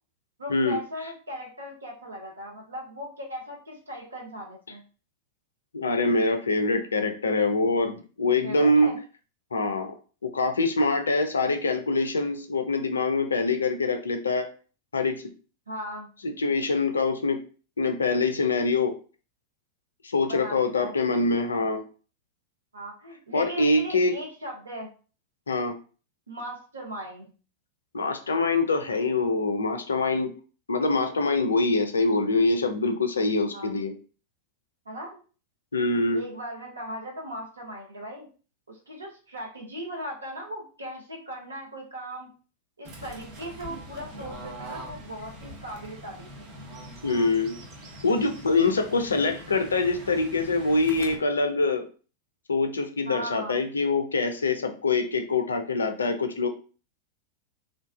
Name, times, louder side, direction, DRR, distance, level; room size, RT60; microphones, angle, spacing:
voice 1, 0.4-4.8 8.4-9.0 15.7-16.1 20.2-20.9 22.7-24.9 26.3-27.3 33.5-33.7 34.9-35.2 36.1-38.3 38.7-42.3 42.8-46.5 53.0-53.6, equal, 75° right, -1 dB, 0.7 m, -38 dB
voice 2, 5.7-8.9 9.5-9.9 10.2-14.5 14.9-15.2 16.2-17.4 17.8-18.9 20.0-21.8 23.3-24.1 25.5-25.7 27.9-30.3 30.7-33.9 35.7-36.2 47.0-47.6 48.0-51.9 52.5-56.5, left 3 dB, 75° left, 6 dB, 0.3 m, -24 dB
Fowl / Bird, 42.8-51.1, right 1 dB, 40° right, 0.7 m, -43 dB
2.5 x 2.2 x 2.2 m, 0.38 s
figure-of-eight pair, 90°, 0 cm